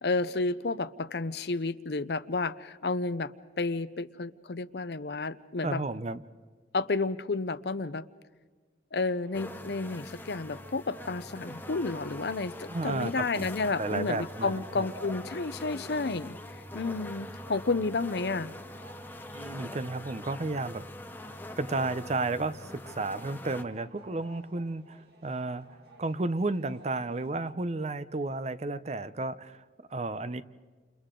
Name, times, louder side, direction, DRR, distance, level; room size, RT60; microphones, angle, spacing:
voice 1, 0.0-5.8 6.7-8.0 8.9-16.4 16.7-18.5, left 3 dB, 65° left, 14 dB, 0.7 m, -31 dB
voice 2, 5.6-6.2 12.7-13.5 13.8-14.9 19.3-20.8 21.6-25.7 26.0-29.6 29.9-30.4, right 2 dB, 40° right, 14 dB, 0.6 m, -32 dB
sound 1, 8.9-27.5, right 1 dB, 65° right, 2.6 m, -55 dB
sound 2, 9.3-23.6, left 1 dB, 10° left, 0.8 m, -43 dB
30.0 x 28.5 x 3.8 m, 1.4 s
head